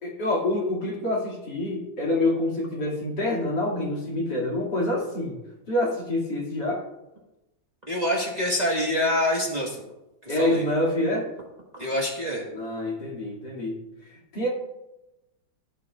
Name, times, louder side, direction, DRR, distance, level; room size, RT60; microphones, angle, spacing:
voice 1, 0.0-5.4 5.7-6.8 10.3-11.3 12.5-13.8 14.3-14.5, left 1 dB, 65° left, -4 dB, 3.1 m, -26 dB
voice 2, 7.9-9.8 10.2-10.6 11.8-12.4, left 1 dB, 25° right, -3 dB, 1.5 m, -26 dB
15.5 x 9.5 x 2.4 m, 0.96 s
omnidirectional pair, 2.0 m